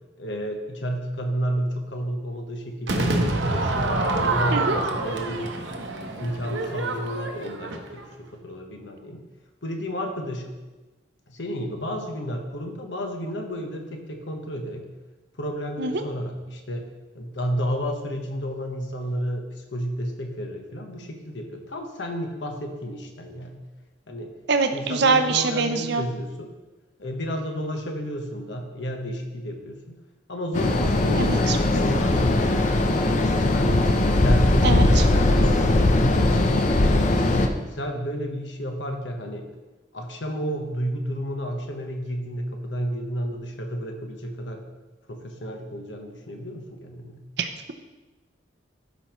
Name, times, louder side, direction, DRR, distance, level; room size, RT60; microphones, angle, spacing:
voice 1, 0.2-5.6 6.2-9.2 9.6-10.5 11.3-14.9 15.4-16.8 17.1-23.6 24.1-24.3 24.7-26.5 27.0-29.9 30.3-33.8 34.1-36.6 37.2-39.5 39.9-44.6 45.1-47.2, equal, 80° left, 3 dB, 1.1 m, -31 dB
Crowd / Fireworks, 2.9-8.1, right 2 dB, 85° right, 0.9 m, -26 dB
voice 2, 24.5-26.0 31.2-31.6 34.6-35.0 47.4-47.7, right 4 dB, 65° right, 7 dB, 0.6 m, -24 dB
sound 1, 30.5-37.5, left 2 dB, 45° left, 0.6 m, -20 dB
12.5 x 5.2 x 3.1 m, 1.2 s
head